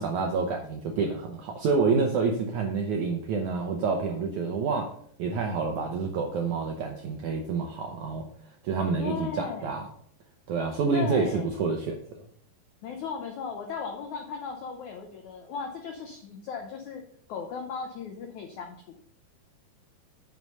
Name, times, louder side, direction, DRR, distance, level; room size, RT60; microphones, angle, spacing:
voice 1, 0.0-4.9 5.2-8.3 8.6-9.9 10.5-12.2, right 4 dB, 80° right, 3 dB, 1.7 m, -28 dB
voice 2, 9.0-9.7 10.9-11.5 12.8-17.0 17.3-18.8, left 6 dB, 80° left, 4 dB, 1.7 m, -36 dB
9.5 x 6.0 x 5.4 m, 0.64 s
omnidirectional pair, 4.7 m